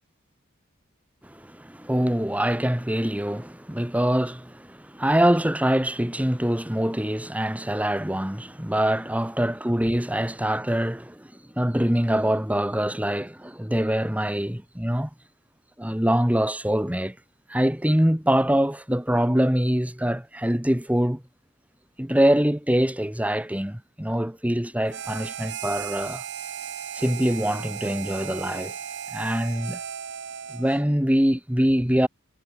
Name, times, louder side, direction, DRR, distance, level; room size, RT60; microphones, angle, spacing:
voice 1, 1.2-15.1 15.8-17.2 17.5-21.2 22.0-26.2 26.9-28.7 29.1-29.8 30.5-32.1, equal, 5° right, 1.5 m, -24 dB
Harmonica, 24.9-30.9, right 8 dB, 60° right, 1.2 m, -36 dB
head